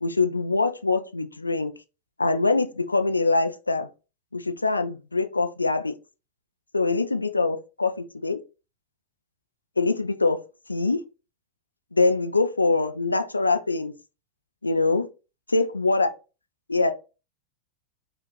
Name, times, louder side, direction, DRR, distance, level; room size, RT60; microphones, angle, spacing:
voice 1, 0.0-1.7 2.2-3.9 4.3-5.9 6.7-8.4 9.8-10.4 10.7-11.0 11.9-13.9 14.6-15.1 15.5-16.1 16.7-16.9, left 3 dB, 80° left, 0.4 m, -23 dB
4.8 x 2.5 x 3.1 m
figure-of-eight pair, 90°, 0 cm